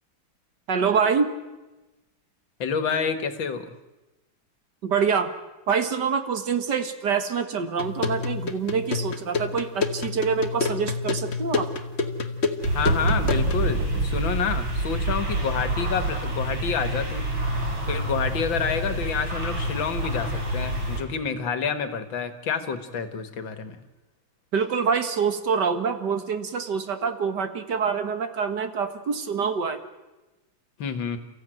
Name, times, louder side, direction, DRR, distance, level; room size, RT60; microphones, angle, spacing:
voice 1, 0.7-1.3 4.8-5.3 5.7-11.7 24.5-29.8, right 6 dB, 60° right, 9 dB, 2.1 m, -25 dB
voice 2, 2.6-3.7 12.7-17.3 17.9-23.8 30.8-31.2, left 6 dB, 80° left, 10 dB, 2.3 m, -28 dB
sound 1, 7.8-13.7, left 4 dB, 35° left, 1.5 m, -28 dB
sound 2, 12.6-21.0, right 2 dB, 80° right, 5.2 m, -27 dB
29.5 x 15.0 x 9.2 m, 1.1 s
omnidirectional pair, 2.1 m